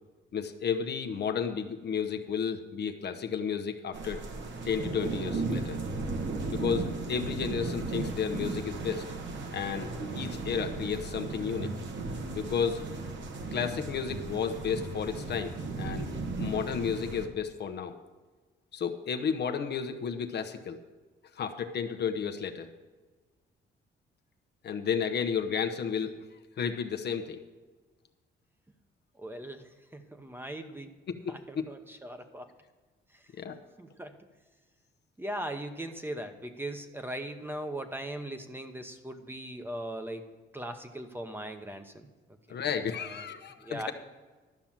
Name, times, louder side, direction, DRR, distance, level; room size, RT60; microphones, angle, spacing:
voice 1, 0.3-4.2 4.6-5.8 6.5-9.0 9.5-9.9 10.1-11.7 12.3-12.8 13.5-16.1 16.4-18.0 18.7-20.8 21.4-22.7 24.6-26.1 26.6-27.4 31.2-31.6 33.3-33.6 42.5-43.9, left 7 dB, 55° left, 7 dB, 1.0 m, -32 dB
sound 1, 3.9-17.3, right 3 dB, 65° right, 1.4 m, -36 dB
voice 2, 29.2-30.9 31.3-32.5 33.1-33.2 33.8-34.2 35.2-40.2 40.5-42.1 42.5-42.6 42.9-43.9, right 1 dB, 10° right, 7 dB, 1.0 m, -39 dB
12.0 x 5.8 x 7.4 m, 1.3 s
cardioid pair, 90°, 20 cm